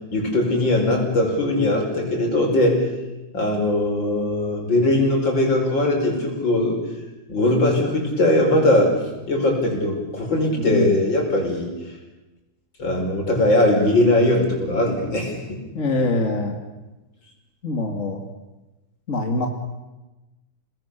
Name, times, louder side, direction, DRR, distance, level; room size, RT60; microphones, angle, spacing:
voice 1, 0.1-2.9 3.3-6.8 7.3-9.0 9.3-11.7 12.8-15.6, left 1 dB, 75° left, 1 dB, 5.9 m, -20 dB
voice 2, 10.5-11.0 15.7-16.6 17.6-18.3 19.1-19.5, left 2 dB, 40° left, 2 dB, 2.3 m, -24 dB
29.5 x 19.5 x 6.8 m, 1.1 s
omnidirectional pair, 2.1 m